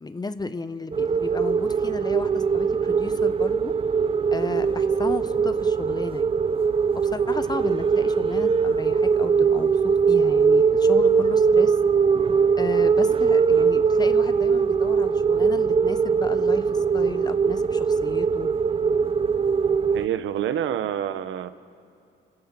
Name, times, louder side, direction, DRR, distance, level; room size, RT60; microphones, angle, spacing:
voice 1, 0.0-3.7 4.3-6.3 6.9-9.8 10.1-11.8 12.6-18.5, left 3 dB, 20° left, 13 dB, 0.8 m, -34 dB
sound 1, 0.9-20.1, right 5 dB, 30° right, 0.5 m, -21 dB
Musical instrument, 4.6-14.2, left 6 dB, 45° left, 4.9 m, -52 dB
voice 2, 19.9-21.5, right 10 dB, 75° right, 12 dB, 0.9 m, -27 dB
28.0 x 15.5 x 6.0 m, 2.5 s
cardioid pair, 90°, 20 cm